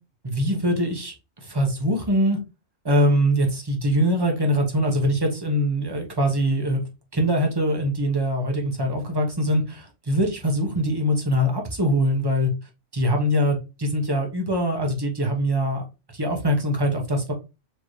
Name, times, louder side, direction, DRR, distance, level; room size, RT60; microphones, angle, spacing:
voice 1, 0.2-2.4 2.8-6.8 7.1-12.5 12.9-15.8 16.1-17.3, equal, 20° right, 2 dB, 0.9 m, -23 dB
4.5 x 2.8 x 3.1 m, 0.28 s
omnidirectional pair, 1.3 m